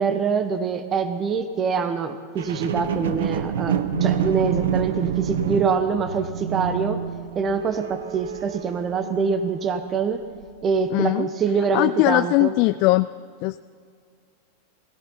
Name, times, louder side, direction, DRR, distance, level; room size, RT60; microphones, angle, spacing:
voice 1, 0.0-7.0 7.3-10.2 10.6-12.5, right 5 dB, 30° right, 9 dB, 1.0 m, -25 dB
sound 1, 2.4-9.8 10.4-10.5, right 8 dB, 80° right, 0.8 m, -27 dB
voice 2, 10.9-11.3 11.7-13.1 13.4-13.6, left 19 dB, 55° left, 13 dB, 0.3 m, -20 dB
17.5 x 17.5 x 4.4 m, 2.2 s
hypercardioid pair, 115°, 0 cm